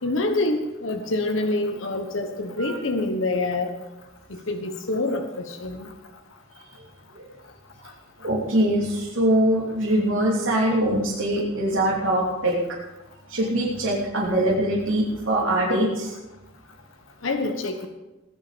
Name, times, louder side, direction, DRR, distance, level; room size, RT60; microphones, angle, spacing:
voice 1, 0.0-3.7 4.3-5.9 17.2-17.9, left 2 dB, 70° left, 4 dB, 1.2 m, -26 dB
voice 2, 8.2-12.5 13.3-16.1, right 1 dB, 75° right, -6 dB, 3.2 m, -23 dB
18.5 x 10.5 x 5.2 m, 1.0 s
head